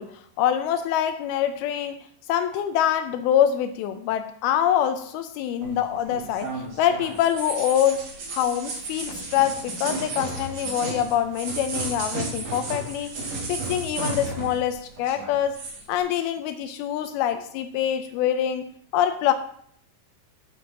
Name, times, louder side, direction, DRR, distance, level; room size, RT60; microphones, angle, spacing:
voice 1, 0.0-15.6 15.9-18.7 18.9-19.3, left 10 dB, 85° left, 9 dB, 2.4 m, -25 dB
sound 1, 5.6-14.7 15.0-15.8, right 3 dB, 50° right, 2.6 m, -33 dB
12.5 x 8.4 x 2.8 m, 0.64 s
omnidirectional pair, 4.5 m